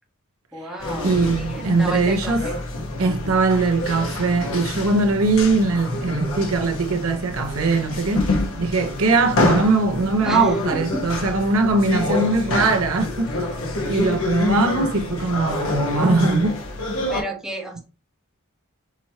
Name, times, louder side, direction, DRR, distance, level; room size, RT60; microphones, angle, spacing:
voice 1, 0.5-2.5 10.2-11.1 17.1-17.8, right 1 dB, 5° right, 1.0 m, -32 dB
sound 1, 0.8-17.2, left 2 dB, 75° left, 1.2 m, -27 dB
voice 2, 1.0-2.5 3.0-13.3 13.9-16.6, right 3 dB, 90° right, 0.9 m, -21 dB
6.1 x 2.9 x 2.8 m
head